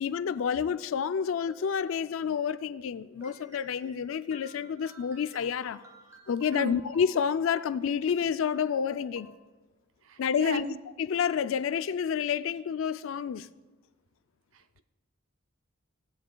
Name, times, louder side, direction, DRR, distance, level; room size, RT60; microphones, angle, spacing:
voice 1, 0.0-5.8 6.3-9.3 10.2-10.7 11.0-13.5, left 7 dB, 70° left, 0.3 m, -29 dB
sound 1, 1.2-2.5 3.2-9.4, right 3 dB, 15° right, 0.8 m, -55 dB
voice 2, 6.5-6.8 10.1-10.8, right 4 dB, 75° right, 0.6 m, -36 dB
16.5 x 9.6 x 2.3 m
head